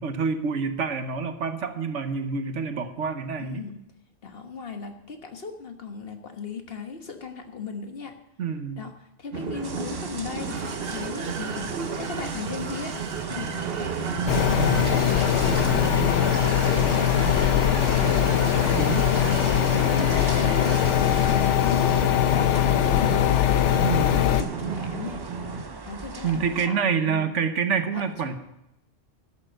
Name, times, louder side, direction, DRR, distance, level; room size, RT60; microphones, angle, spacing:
voice 1, 0.0-3.6 8.4-8.9 18.8-19.1 23.8-24.2 26.2-28.4, right 6 dB, 80° right, 9 dB, 1.3 m, -27 dB
voice 2, 3.4-3.8 4.2-8.2 8.8-8.9 9.2-11.7 12.0-13.5 13.8-16.1 16.6-18.1 18.5-25.2 25.8-27.4 27.9-28.4, left 5 dB, 55° left, 5 dB, 1.5 m, -37 dB
sound 1, 9.3-25.6, right 5 dB, 55° right, 1.1 m, -31 dB
sound 2, 9.6-26.7, right 4 dB, 30° right, 0.4 m, -39 dB
sound 3, 14.3-24.4, left 11 dB, 80° left, 0.9 m, -21 dB
11.5 x 6.9 x 7.8 m, 0.85 s
omnidirectional pair, 1.2 m